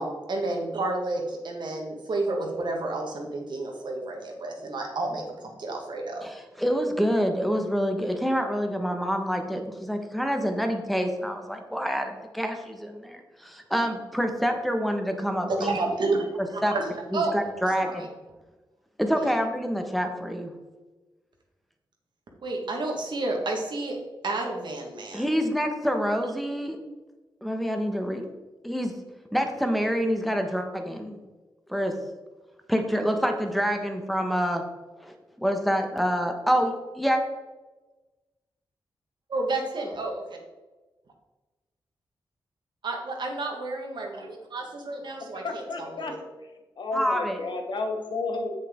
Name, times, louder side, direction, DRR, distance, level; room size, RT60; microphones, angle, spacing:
voice 1, 0.0-5.2 5.6-6.3 15.5-16.8 17.1-17.4 17.8-18.1 19.2-19.3 22.4-24.0 24.2-25.2 39.3-40.2 42.8-46.2, right 2 dB, 65° right, 1 dB, 1.8 m, -30 dB
voice 2, 6.2-15.8 16.4-16.7 17.1-18.1 19.0-20.5 25.1-26.8 27.4-28.2 28.6-28.9 29.3-31.2 31.7-31.9 32.7-34.6 35.0-35.1 35.4-37.2 46.9-47.4, equal, ahead, 4 dB, 1.3 m, -27 dB
voice 3, 45.3-46.1 46.8-48.5, left 3 dB, 65° left, 4 dB, 1.2 m, -31 dB
7.6 x 6.5 x 3.8 m, 1.2 s
cardioid pair, 70°, 8 cm